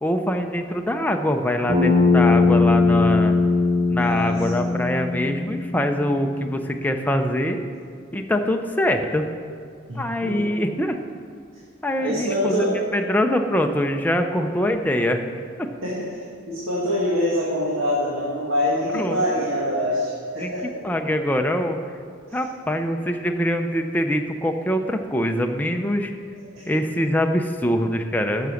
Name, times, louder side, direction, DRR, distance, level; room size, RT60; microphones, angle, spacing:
voice 1, 0.0-3.4 3.9-7.6 8.1-9.3 9.9-11.0 11.8-15.2 18.9-19.4 20.4-21.8 22.3-26.1 26.7-28.5, left 1 dB, 10° left, 4 dB, 0.5 m, -24 dB
Bass guitar, 1.7-6.0, left 3 dB, 45° right, 3.3 m, -19 dB
voice 2, 4.0-4.6 9.9-10.5 12.0-12.7 15.8-16.1 16.5-20.6 22.3-22.4, equal, 90° right, -6 dB, 2.0 m, -25 dB
11.0 x 6.9 x 6.4 m, 2.2 s
head